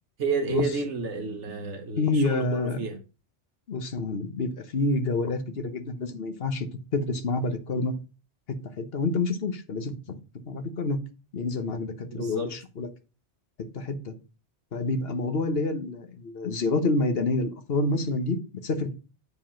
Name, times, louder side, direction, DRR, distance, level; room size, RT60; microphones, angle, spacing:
voice 1, 0.2-3.0 12.1-12.5, right 4 dB, 80° right, 5 dB, 1.3 m, -30 dB
voice 2, 2.0-2.8 3.7-6.7 6.9-7.9 8.5-10.2 10.5-11.0 11.3-12.9 13.6-14.1 14.7-18.9, left 3 dB, 55° left, 7 dB, 1.3 m, -28 dB
8.4 x 5.2 x 5.6 m, 0.33 s
omnidirectional pair, 1.2 m